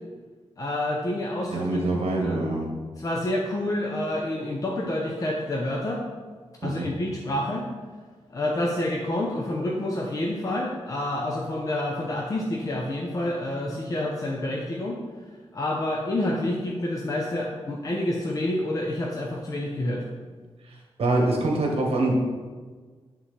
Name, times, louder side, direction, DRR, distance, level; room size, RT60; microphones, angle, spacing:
voice 1, 0.6-1.7 1.9-2.4 3.0-6.0 6.6-7.7 8.3-15.0 15.5-20.0, left 1 dB, 35° left, -1 dB, 0.6 m, -28 dB
voice 2, 1.5-2.7 6.6-6.9 20.7-20.8 21.0-22.1, right 2 dB, 70° right, 0 dB, 1.3 m, -24 dB
9.6 x 3.8 x 3.2 m, 1.5 s
wide cardioid pair, 155°, 11 cm